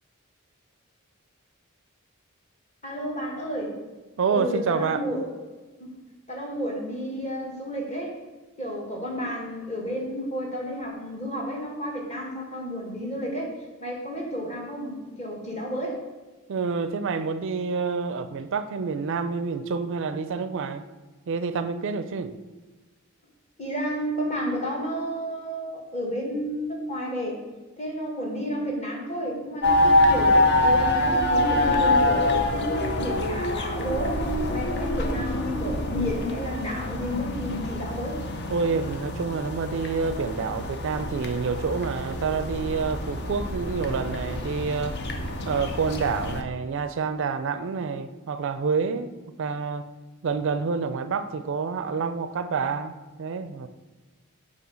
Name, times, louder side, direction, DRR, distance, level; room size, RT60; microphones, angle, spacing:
voice 1, 2.8-3.7 4.3-5.2 5.8-5.9 6.3-8.1 8.6-13.5 13.8-16.0 23.6-27.4 27.8-34.2 34.5-38.2, equal, 30° left, -1 dB, 1.5 m, -31 dB
voice 2, 4.2-5.0 16.5-20.9 21.3-22.3 38.5-45.0 45.5-49.1 49.4-49.9 50.2-53.7, right 5 dB, 60° right, 11 dB, 0.4 m, -28 dB
sound 1, 29.6-46.4, left 1 dB, 50° left, 0.8 m, -25 dB
7.9 x 2.8 x 6.1 m, 1.2 s
head